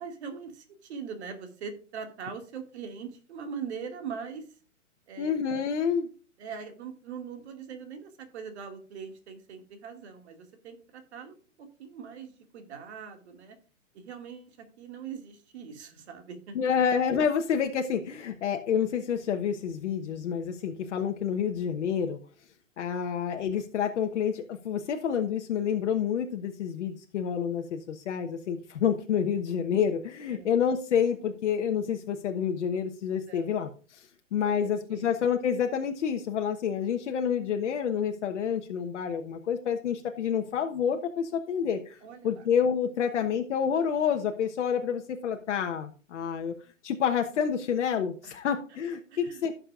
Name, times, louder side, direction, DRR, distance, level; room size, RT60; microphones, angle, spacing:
voice 1, 0.0-4.4 5.1-5.3 6.4-13.6 13.9-16.6 30.3-30.5 33.3-33.5 34.4-35.1 42.0-42.4 48.2-48.4 49.1-49.6, right 6 dB, 60° right, 5 dB, 2.3 m, -42 dB
voice 2, 5.2-6.1 16.5-22.2 22.8-42.0 42.2-46.5 46.8-49.6, left 7 dB, 65° left, 5 dB, 1.2 m, -28 dB
15.5 x 6.7 x 2.5 m, 0.39 s
hypercardioid pair, 140°, 38 cm